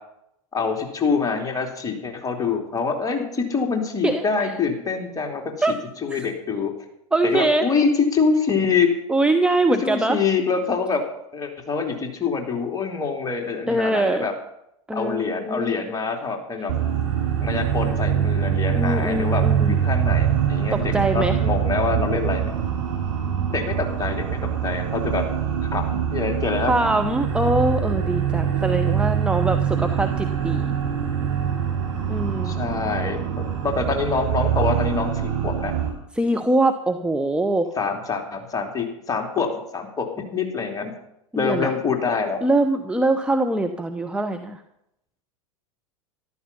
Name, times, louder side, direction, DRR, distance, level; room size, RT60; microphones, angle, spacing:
voice 1, 0.5-5.5 6.0-6.7 7.2-8.9 9.8-11.0 11.3-14.3 14.9-16.7 17.4-22.5 23.5-25.3 25.7-26.7 27.0-27.1 32.4-35.7 37.8-39.5 39.7-40.1 40.3-40.9 41.3-42.4, left 5 dB, 20° left, 2 dB, 3.2 m, -25 dB
voice 2, 4.0-4.5 5.6-5.7 6.1-6.3 7.1-7.7 9.1-10.2 13.7-14.3 14.9-16.0 18.7-19.8 20.7-21.4 26.7-30.7 32.1-32.6 36.1-37.7 41.3-41.7 42.4-44.6, right 2 dB, 5° right, 6 dB, 0.9 m, -23 dB
sound 1, 16.7-35.9, right 8 dB, 70° right, 7.3 m, -24 dB
13.5 x 12.5 x 5.6 m, 0.80 s
figure-of-eight pair, 90°, 17 cm